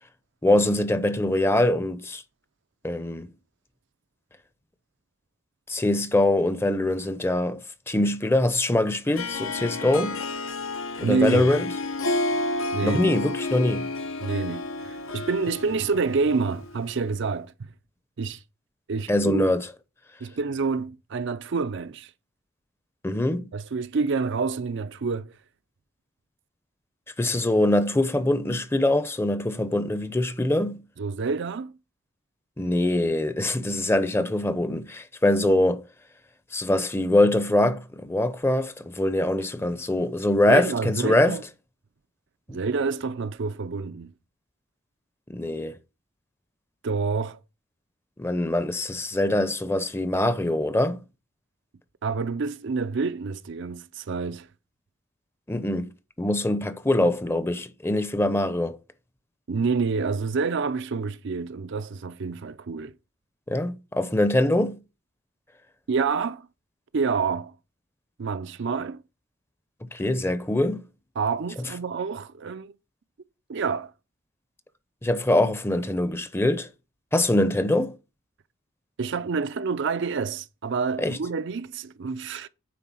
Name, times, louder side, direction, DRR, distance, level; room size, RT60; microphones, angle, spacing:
voice 1, 0.4-2.2 2.8-3.3 5.7-10.2 11.0-11.7 12.8-13.9 19.1-19.7 23.0-23.5 27.2-30.8 32.6-35.8 36.5-41.4 42.5-42.6 45.3-45.8 48.2-51.0 55.5-55.9 56.2-58.8 63.5-64.8 69.9-70.8 75.0-76.7 77.1-78.0 81.0-81.2, left 1 dB, 10° left, 0.6 m, -23 dB
Harp, 9.1-16.9, left 2 dB, 80° left, 0.9 m, -31 dB
voice 2, 11.0-11.5 12.7-13.1 14.2-17.5 18.2-18.4 18.9-19.5 20.2-22.1 23.5-25.3 31.0-31.7 40.5-41.4 42.5-44.1 46.8-47.4 52.0-54.5 59.5-62.9 65.9-66.5 66.9-67.5 68.2-69.0 71.2-72.7 73.5-73.9 79.0-82.5, right 4 dB, 60° right, 0.5 m, -28 dB
9.3 x 3.8 x 6.1 m
head